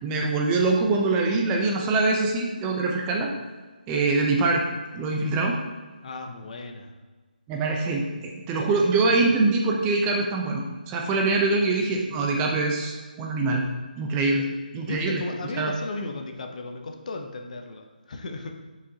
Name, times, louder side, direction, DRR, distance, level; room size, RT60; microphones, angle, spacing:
voice 1, 0.0-3.3 3.9-4.6 4.9-5.6 7.5-13.6 14.0-15.2 15.6-15.7, right 3 dB, 15° right, 0 dB, 0.5 m, -24 dB
voice 2, 6.0-6.9 14.9-18.6, left 3 dB, 50° left, 4 dB, 0.7 m, -35 dB
7.0 x 4.9 x 2.7 m, 1.3 s
figure-of-eight pair, 160°, 5 cm